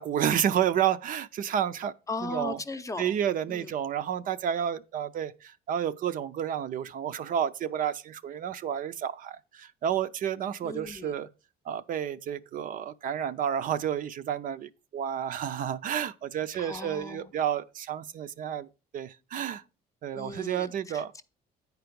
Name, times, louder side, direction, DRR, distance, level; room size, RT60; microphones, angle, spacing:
voice 1, 0.0-1.9 2.2-2.6 3.0-11.3 11.7-18.7 18.9-19.6 20.0-21.1, right 9 dB, 55° right, 0.5 m, -30 dB
voice 2, 2.1-3.1 3.5-3.7 10.6-11.1 16.6-17.3 20.1-21.2, left 3 dB, 20° left, 0.6 m, -38 dB
9.4 x 4.7 x 5.2 m
cardioid pair, 110°, 17 cm